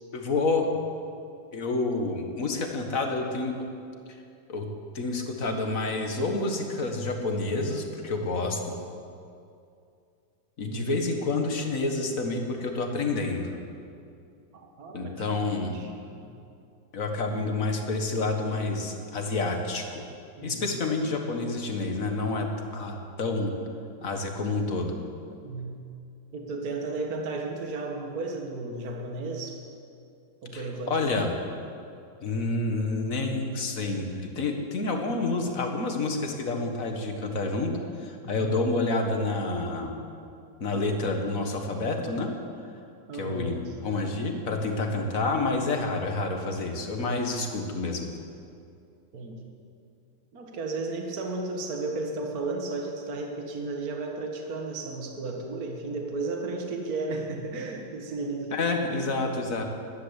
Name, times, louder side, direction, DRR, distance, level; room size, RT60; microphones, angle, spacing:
voice 1, 0.1-0.7 1.5-3.5 4.5-4.7 4.9-8.8 10.6-13.6 14.9-15.7 16.9-20.0 20.4-23.5 24.0-25.0 30.5-31.4 32.2-34.1 34.4-39.9 40.6-42.3 43.1-48.1 58.5-59.6, left 3 dB, 45° left, 3 dB, 1.8 m, -28 dB
voice 2, 10.6-11.0 14.5-16.3 20.4-20.8 25.4-25.9 26.3-29.6 30.4-31.2 38.3-38.6 43.1-43.7 49.1-49.5 50.3-58.6 58.9-59.3, right 3 dB, 50° right, 1 dB, 1.9 m, -34 dB
14.0 x 11.5 x 8.2 m, 2.5 s
omnidirectional pair, 2.1 m